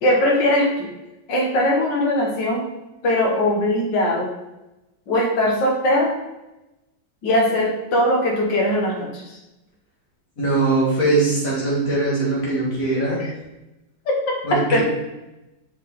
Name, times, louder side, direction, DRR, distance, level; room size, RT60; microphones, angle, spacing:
voice 1, 0.0-0.9 1.3-2.7 3.0-4.3 5.1-6.2 7.2-9.4 13.1-13.3 14.1-14.8, left 1 dB, 90° left, -1 dB, 2.0 m, -20 dB
voice 2, 10.4-13.2 14.4-14.8, right 2 dB, 50° left, -5 dB, 2.8 m, -21 dB
5.8 x 5.4 x 4.2 m, 0.98 s
omnidirectional pair, 1.9 m